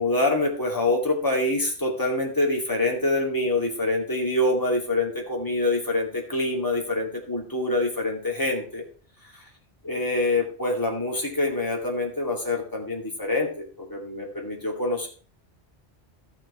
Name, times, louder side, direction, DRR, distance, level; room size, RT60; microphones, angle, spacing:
voice 1, 0.0-8.8 9.8-13.6 13.9-15.1, left 2 dB, 20° left, 0 dB, 2.4 m, -25 dB
13.5 x 6.2 x 4.3 m, 0.40 s
omnidirectional pair, 1.1 m